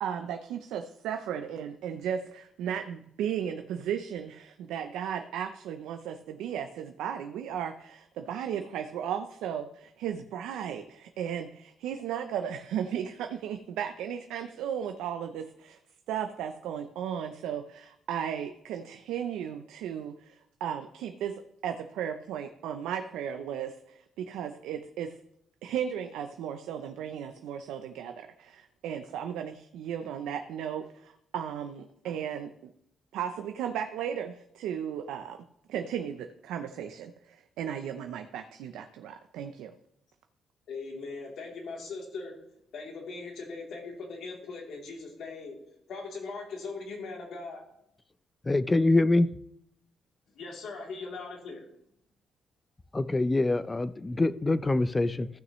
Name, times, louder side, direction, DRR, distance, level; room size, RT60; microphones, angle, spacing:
voice 1, 0.0-15.8 16.1-25.1 25.6-32.7 33.1-35.4 35.7-39.7, right 9 dB, 90° right, 6 dB, 0.5 m, -35 dB
voice 2, 40.7-42.4 42.7-45.6 45.9-47.6 50.3-51.6, left 4 dB, 70° left, -1 dB, 3.0 m, -40 dB
voice 3, 48.5-49.3 52.9-55.3, left 2 dB, 20° left, 14 dB, 0.5 m, -24 dB
15.0 x 6.1 x 3.1 m, 0.77 s
cardioid pair, 90°, 0 cm